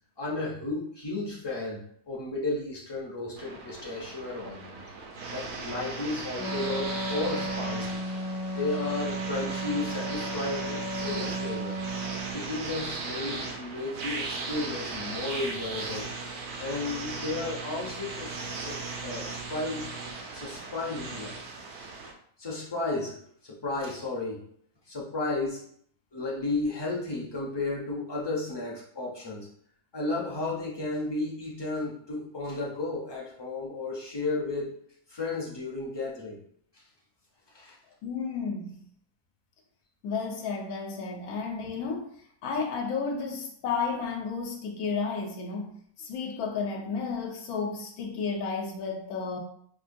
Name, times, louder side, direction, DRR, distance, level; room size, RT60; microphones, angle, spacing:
voice 1, 0.2-1.8 2.1-4.8 5.3-8.0 8.5-11.8 12.3-19.9 20.3-21.4 22.4-23.2 23.4-24.4 24.9-25.6 26.1-29.5 29.9-34.8 35.1-36.4 37.5-37.8, left 2 dB, 35° left, -3 dB, 0.4 m, -33 dB
sound 1, 3.4-22.1, right 3 dB, 65° right, 0.8 m, -37 dB
Wind instrument woodwind instrument, 6.4-12.5, right 1 dB, 65° left, 1.0 m, -34 dB
voice 2, 38.0-38.8 40.0-42.1 42.4-49.4, left 5 dB, 85° left, 1 dB, 1.1 m, -32 dB
4.8 x 2.2 x 2.6 m, 0.62 s
omnidirectional pair, 1.5 m